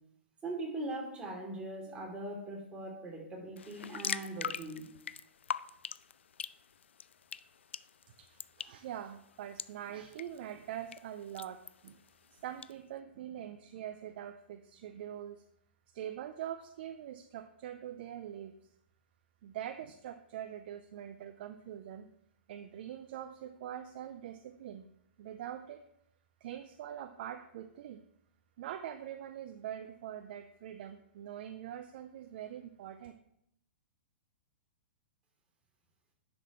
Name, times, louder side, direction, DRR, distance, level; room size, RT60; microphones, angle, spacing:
voice 1, 0.4-4.9, right 2 dB, 15° right, -2 dB, 3.2 m, -40 dB
sound 1, 3.6-12.7, left 8 dB, 80° left, 0.3 m, -44 dB
voice 2, 8.2-12.0 12.3-15.4 15.9-18.5 19.4-22.1 22.5-24.9 25.2-25.8 26.4-28.0 28.6-33.1, right 10 dB, 55° right, 8 dB, 0.6 m, -44 dB
10.5 x 6.2 x 3.1 m, 0.75 s
hypercardioid pair, 120°, 6 cm